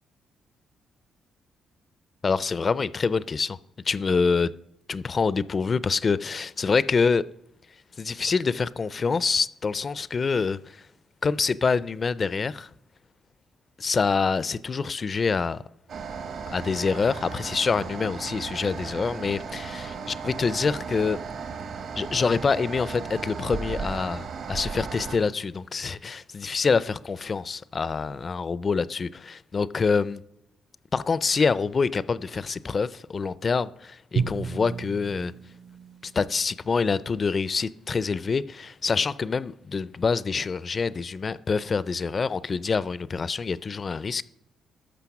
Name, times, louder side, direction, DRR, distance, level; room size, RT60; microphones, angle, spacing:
voice 1, 2.2-3.6 3.9-4.5 4.9-7.2 8.0-10.8 11.2-12.7 13.8-15.6 16.5-21.2 22.0-30.2 30.9-35.3 36.0-44.2, left 5 dB, 35° left, 0.4 m, -26 dB
sound 1, 15.9-25.2, right 5 dB, 60° right, 1.3 m, -35 dB
Drum, 34.2-37.1, right 6 dB, 45° right, 0.6 m, -33 dB
13.0 x 5.9 x 5.9 m
cardioid pair, 125°, 0 cm